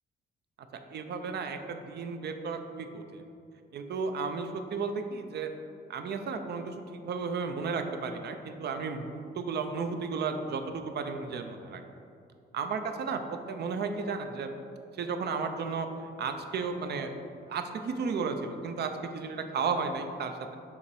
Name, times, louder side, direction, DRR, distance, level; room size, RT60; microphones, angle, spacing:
voice 1, 0.9-3.3 3.7-5.5 5.9-11.8 12.5-14.5 15.0-15.9 16.2-17.1 17.5-20.6, right 5 dB, 55° right, 6 dB, 0.5 m, -33 dB
7.0 x 2.9 x 4.7 m, 2.5 s
cardioid pair, 90°, 20 cm